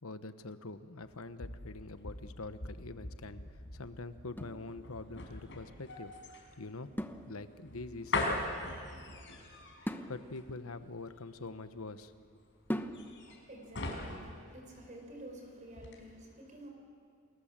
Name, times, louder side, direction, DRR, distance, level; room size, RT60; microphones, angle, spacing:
voice 1, 0.0-6.1 6.6-6.9 7.2-8.4 10.1-12.1, left 3 dB, 85° left, 11 dB, 1.1 m, -45 dB
sound 1, 1.0-15.4 15.7-16.0, left 2 dB, 60° left, 4.7 m, -41 dB
sound 2, 4.3-5.3 7.0-7.9 9.8-11.8 12.7-13.4, equal, 10° left, 1.0 m, -42 dB
voice 2, 13.1-16.7, right 1 dB, 35° right, 2 dB, 5.1 m, -50 dB
29.0 x 21.0 x 7.5 m, 2.2 s
head